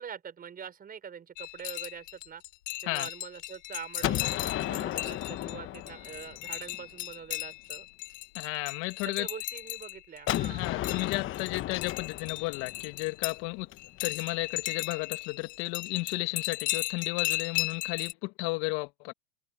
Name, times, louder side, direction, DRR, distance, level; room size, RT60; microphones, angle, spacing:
voice 1, 0.0-2.4 2.8-7.9 9.0-10.7, right 7 dB, 25° right, 5.3 m, -44 dB
sound 1, 1.4-13.4 13.8-18.1, left 16 dB, 75° left, 5.6 m, -36 dB
Gunshot gunfire, 4.0-6.8 10.3-14.1, left 14 dB, 35° left, 1.1 m, -34 dB
voice 2, 8.3-9.3 10.5-13.7 14.0-19.1, left 26 dB, 55° left, 2.5 m, -33 dB
hypercardioid pair, 120°, 37 cm